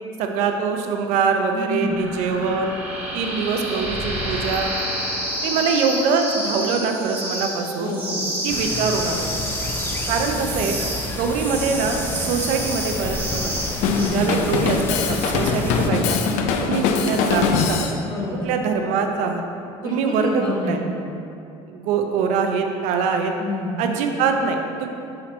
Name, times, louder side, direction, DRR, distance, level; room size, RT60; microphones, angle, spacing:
voice 1, 0.2-2.8 3.1-4.7 5.4-8.0 8.4-9.3 10.1-10.8 11.2-13.5 14.1-16.2 16.6-17.9 18.4-19.4 19.8-20.8 21.7-23.3 23.8-24.9, right 5 dB, 75° right, 4 dB, 0.6 m, -23 dB
voice 2, 1.5-2.0 7.8-8.3 13.9-14.2 18.0-18.5 19.8-20.9 23.4-23.8, left 2 dB, 40° left, -4 dB, 1.2 m, -28 dB
sound 1, 1.9-14.1, right 1 dB, 15° right, 1.2 m, -29 dB
sound 2, 8.5-15.9, left 2 dB, 15° left, 0.4 m, -30 dB
Drum kit, 13.8-18.0, left 5 dB, 70° left, 0.5 m, -22 dB
5.9 x 3.8 x 4.2 m, 2.6 s
cardioid pair, 135°, 12 cm